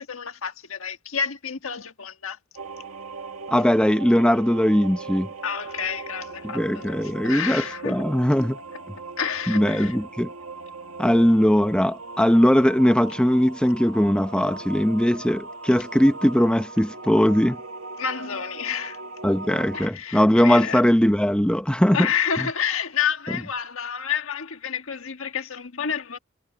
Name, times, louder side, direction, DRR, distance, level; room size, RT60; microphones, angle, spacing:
voice 1, 0.0-2.4 5.4-8.0 9.2-10.0 18.0-19.0 19.7-20.8 21.9-26.2, left 7 dB, 70° left, 1.6 m, -29 dB
sound 1, 2.5-19.9, right 3 dB, 70° right, 2.2 m, -39 dB
voice 2, 3.5-5.3 6.4-8.6 9.5-10.3 11.0-17.6 19.2-22.1, equal, 5° left, 0.7 m, -20 dB
head